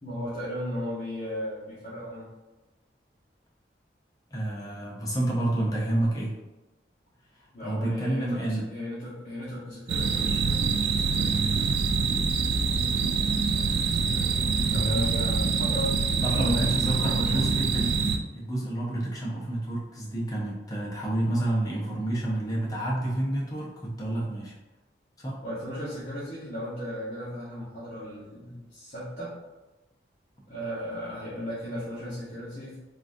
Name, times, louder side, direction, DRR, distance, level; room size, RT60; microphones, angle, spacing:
voice 1, 0.0-2.2 7.5-11.4 13.5-14.3 14.7-15.9 16.3-17.4 25.4-29.3 30.5-32.8, equal, 35° left, -11 dB, 1.0 m, -36 dB
voice 2, 4.3-6.3 7.6-8.7 14.6-15.1 16.2-17.9 18.3-24.5 25.2-25.4, right 1 dB, 20° left, -4 dB, 0.6 m, -29 dB
sound 1, 9.9-18.2, right 5 dB, 65° right, 0.3 m, -25 dB
3.7 x 2.3 x 2.5 m, 1.1 s
head